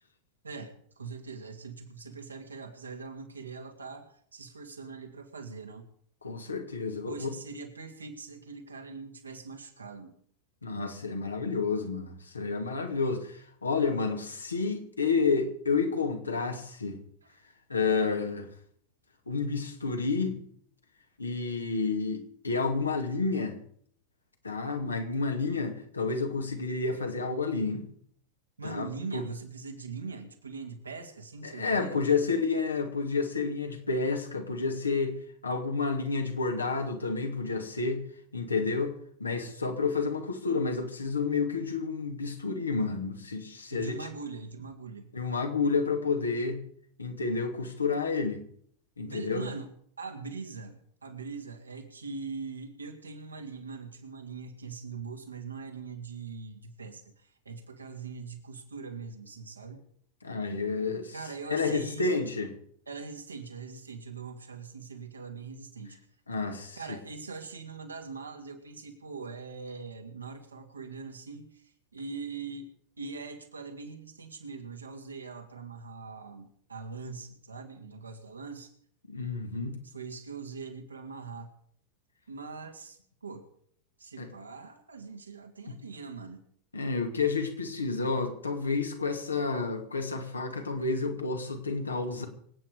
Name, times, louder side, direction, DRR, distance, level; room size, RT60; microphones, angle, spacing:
voice 1, 0.4-5.9 7.1-10.1 17.2-17.4 28.6-32.0 43.7-45.1 49.0-59.8 61.1-62.2 62.9-66.0 66.8-72.7 73.0-78.7 79.8-81.5 82.3-83.5 84.0-86.4, right 4 dB, 75° right, 4 dB, 2.5 m, -42 dB
voice 2, 6.2-7.3 10.6-17.0 17.7-18.5 19.3-20.4 21.2-23.6 24.4-27.8 28.6-28.9 29.1-29.2 31.4-35.2 35.4-38.1 38.3-44.1 45.1-46.6 47.0-48.4 49.0-49.5 60.2-61.1 61.5-62.5 66.3-67.0 79.1-79.8 84.2-84.3 86.7-92.2, left 4 dB, 75° left, 4 dB, 2.4 m, -30 dB
25.5 x 9.1 x 4.9 m, 0.62 s
figure-of-eight pair, 90°, 0 cm